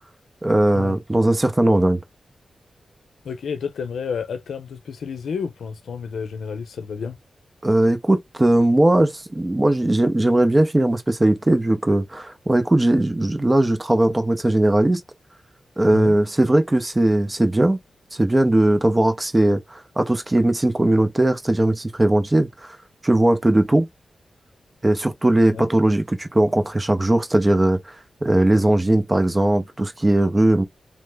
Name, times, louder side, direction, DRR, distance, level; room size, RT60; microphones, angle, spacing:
voice 1, 0.4-2.0 7.6-15.0 15.8-17.8 18.1-22.8 23.0-23.9 24.8-27.8 28.2-30.6, right 1 dB, 20° right, 0.6 m, -19 dB
voice 2, 3.2-7.2 15.9-16.2 25.5-25.7, left 6 dB, 90° left, 0.7 m, -30 dB
3.0 x 2.0 x 3.4 m
wide cardioid pair, 90°, 0 cm